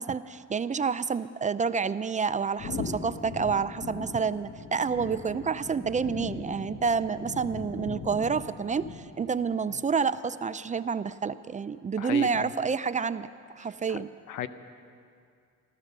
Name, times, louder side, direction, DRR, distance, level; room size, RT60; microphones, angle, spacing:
voice 1, 0.0-13.3 13.6-14.1, right 5 dB, 25° right, 14 dB, 0.4 m, -29 dB
sound 1, 2.6-9.4, left 4 dB, 45° left, 1.1 m, -39 dB
voice 2, 12.0-12.5 13.9-14.0 14.3-14.5, left 11 dB, 85° left, 12 dB, 0.8 m, -35 dB
14.5 x 13.5 x 6.6 m, 2.3 s
cardioid pair, 90°, 30 cm